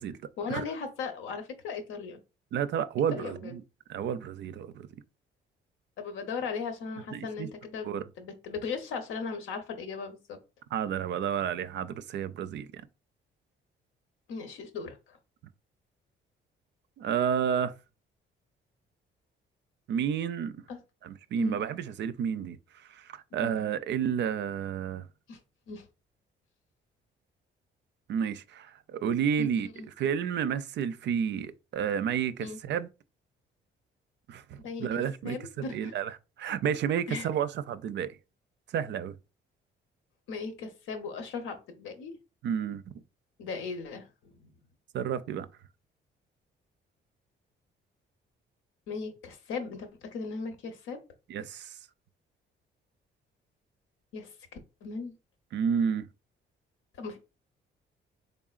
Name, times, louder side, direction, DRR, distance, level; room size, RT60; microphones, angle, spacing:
voice 1, 0.4-2.2 3.1-3.6 6.0-10.4 14.3-15.2 20.7-20.8 21.4-21.6 23.4-23.6 25.3-25.4 25.7-25.9 29.4-29.5 29.7-29.9 32.4-32.6 34.6-34.9 35.2-35.9 37.1-37.3 40.3-42.1 43.4-44.5 48.9-51.0 54.1-54.3 54.8-55.1 57.0-57.2, left 4 dB, 90° left, 0.8 m, -37 dB
voice 2, 2.5-3.6 3.9-4.9 7.1-7.5 7.8-8.0 10.7-12.9 17.0-17.7 19.9-20.6 21.0-25.1 28.1-29.7 30.0-32.9 34.3-36.1 36.4-38.2 38.7-39.1 42.4-42.8 44.9-45.5 51.3-51.8 55.5-56.0, right 8 dB, 65° right, 0.4 m, -31 dB
3.8 x 3.4 x 2.4 m
cardioid pair, 90°, 20 cm